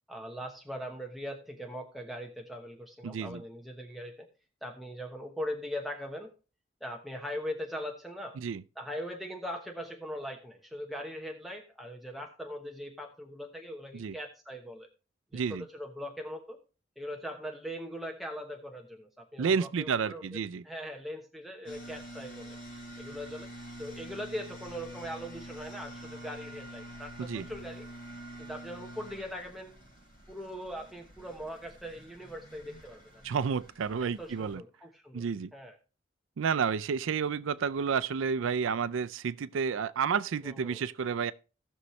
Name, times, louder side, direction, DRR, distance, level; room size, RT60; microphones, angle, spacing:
voice 1, 0.1-4.1 4.6-6.3 6.8-8.4 8.8-14.9 15.3-16.6 17.0-22.6 23.0-23.5 23.8-27.9 28.4-29.7 30.3-33.0 34.0-35.3 35.5-35.8 40.4-40.8, equal, ahead, 1.0 m, -40 dB
voice 2, 3.0-3.4 8.4-8.6 13.9-14.1 15.3-15.6 19.4-20.6 27.2-27.5 33.2-34.6 35.1-35.5 36.4-41.3, right 6 dB, 80° right, 0.4 m, -30 dB
sound 1, 21.6-34.5, right 1 dB, 45° left, 4.2 m, -47 dB
17.5 x 6.4 x 3.2 m
head